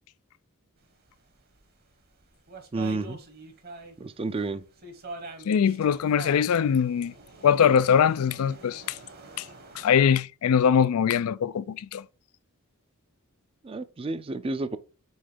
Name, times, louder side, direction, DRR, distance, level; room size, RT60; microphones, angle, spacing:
sound 1, 1.1-4.0 4.3-10.0, right 3 dB, 45° right, 1.2 m, -44 dB
voice 1, 2.7-3.2 4.0-4.6 13.6-14.8, right 3 dB, 25° right, 0.4 m, -30 dB
voice 2, 5.5-7.1 7.4-9.0 9.4-9.5 9.8-12.0, left 7 dB, 80° left, 0.4 m, -22 dB
5.5 x 3.8 x 5.0 m
head